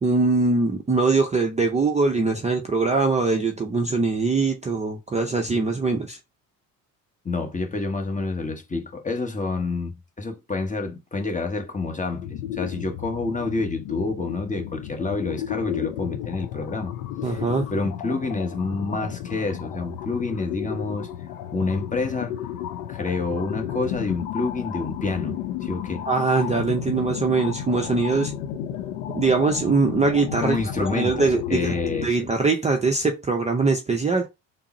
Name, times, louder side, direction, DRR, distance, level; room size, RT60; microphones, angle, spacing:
voice 1, 0.0-6.2 17.2-17.7 26.1-28.3 29.1-30.6 30.9-34.3, right 3 dB, 15° right, 0.5 m, -22 dB
voice 2, 7.2-17.0 17.2-17.4 17.7-21.1 21.5-22.4 22.9-26.1 30.4-32.3, left 3 dB, 15° left, 0.9 m, -28 dB
sound 1, 12.1-32.1, left 10 dB, 75° left, 0.6 m, -33 dB
3.5 x 2.0 x 4.0 m
hypercardioid pair, 70°, 43 cm